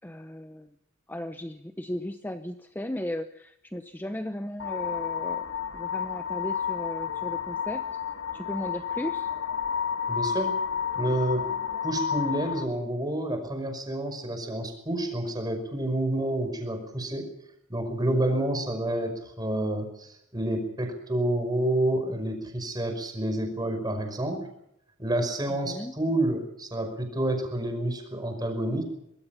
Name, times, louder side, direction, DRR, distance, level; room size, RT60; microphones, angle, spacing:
voice 1, 0.0-0.7 1.1-5.5 5.7-8.0 8.3-9.3 25.5-26.0, left 1 dB, 10° left, 8 dB, 0.9 m, -36 dB
sound 1, 4.6-12.6, left 7 dB, 80° left, 1.6 m, -31 dB
voice 2, 10.1-10.6 11.0-11.4 11.8-17.3 17.7-24.5 25.0-28.8, right 1 dB, 20° right, 6 dB, 5.4 m, -29 dB
24.5 x 21.5 x 5.9 m, 0.76 s
head